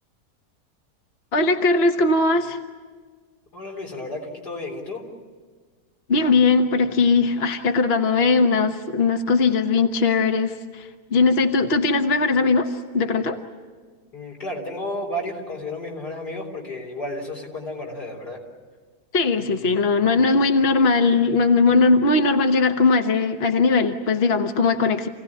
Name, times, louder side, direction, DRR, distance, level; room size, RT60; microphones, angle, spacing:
voice 1, 1.3-2.6 6.1-13.4 19.1-25.1, left 3 dB, 45° left, 6 dB, 1.3 m, -19 dB
voice 2, 3.5-5.1 14.1-18.4, left 1 dB, 80° left, 0 dB, 4.7 m, -32 dB
28.0 x 17.5 x 9.9 m, 1.5 s
omnidirectional pair, 1.7 m